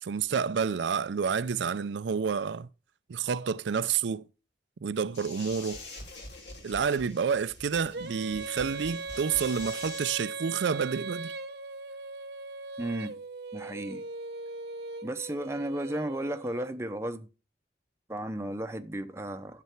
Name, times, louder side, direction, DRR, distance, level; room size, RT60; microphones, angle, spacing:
voice 1, 0.0-2.7 3.1-4.3 4.8-5.8 6.6-11.3, right 6 dB, 85° right, 0.4 m, -29 dB
sound 1, 5.1-10.2, left 2 dB, 80° left, 3.5 m, -45 dB
Female singing, 7.9-16.7, right 3 dB, 65° right, 0.8 m, -39 dB
voice 2, 12.8-13.2 13.5-14.0 15.0-17.3 18.1-19.6, right 1 dB, 15° right, 0.7 m, -34 dB
12.5 x 6.8 x 4.5 m
head